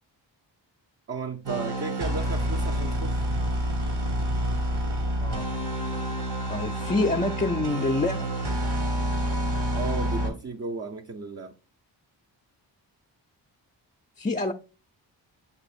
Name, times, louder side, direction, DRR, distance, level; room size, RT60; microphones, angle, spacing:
voice 1, 1.1-3.2 9.7-11.6, right 4 dB, 35° right, 0.6 m, -34 dB
sound 1, 1.5-10.3, right 1 dB, 65° right, 1.6 m, -28 dB
voice 2, 6.5-8.3 14.2-14.5, left 2 dB, 20° left, 0.5 m, -26 dB
8.0 x 3.0 x 4.1 m
cardioid pair, 70°, 44 cm